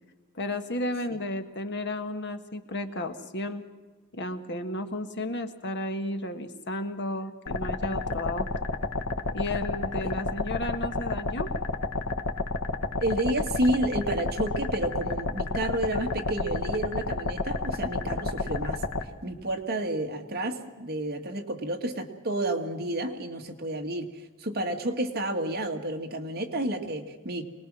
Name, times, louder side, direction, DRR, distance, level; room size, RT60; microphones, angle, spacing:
voice 1, 0.3-3.7 4.1-8.5 9.3-11.5, left 1 dB, 55° left, 7 dB, 1.5 m, -33 dB
sound 1, 7.5-19.0, left 3 dB, 90° left, 1.4 m, -30 dB
voice 2, 13.0-18.8 19.2-27.4, right 1 dB, 50° right, 4 dB, 1.8 m, -30 dB
24.5 x 20.0 x 6.2 m, 1.3 s
head